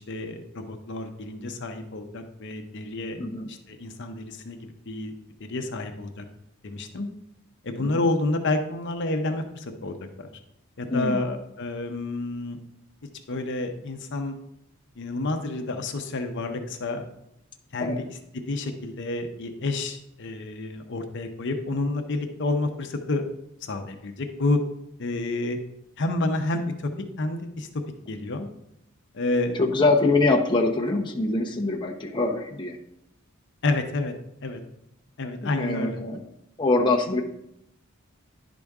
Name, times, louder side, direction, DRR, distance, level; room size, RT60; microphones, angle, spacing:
voice 1, 0.0-3.2 3.5-5.1 5.4-6.2 6.6-7.1 7.6-10.3 10.8-12.6 13.3-14.3 15.0-17.0 17.7-23.2 23.6-24.6 25.0-25.6 26.0-26.9 27.2-27.7 28.1-28.5 29.1-29.8 33.6-34.1 34.4-34.6 35.2-36.1, left 2 dB, 55° left, 5 dB, 0.8 m, -29 dB
voice 2, 3.2-3.5 7.8-7.9 10.9-11.2 17.8-18.0 29.6-32.8 35.4-36.2 36.6-37.2, left 3 dB, 20° left, 0 dB, 0.8 m, -24 dB
11.0 x 5.1 x 3.5 m, 0.79 s
head